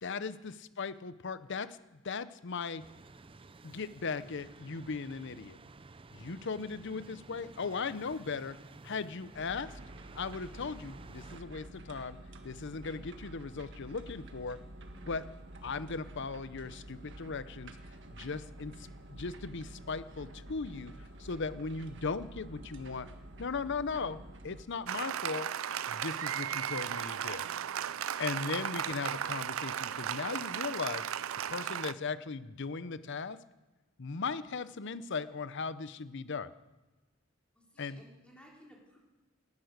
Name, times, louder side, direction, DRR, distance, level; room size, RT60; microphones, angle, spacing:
voice 1, 0.0-1.8 2.0-2.8 3.6-5.6 6.1-8.6 8.8-9.7 10.1-12.2 12.4-14.6 15.1-15.2 15.6-17.8 18.1-18.7 19.1-20.9 21.2-23.1 23.4-24.2 24.4-25.5 25.9-27.4 28.2-31.1 31.5-33.4 34.0-36.5 37.8-38.0, left 4 dB, 60° left, 15 dB, 0.7 m, -38 dB
sound 1, 2.8-11.4, right 3 dB, 25° right, 0.5 m, -53 dB
sound 2, 9.3-24.6, right 1 dB, 65° right, 1.5 m, -49 dB
Applause, 24.9-31.9, right 9 dB, 80° right, 0.5 m, -35 dB
voice 2, 37.5-39.0, equal, 5° left, -3 dB, 3.4 m, -58 dB
18.5 x 10.5 x 6.6 m, 1.1 s
head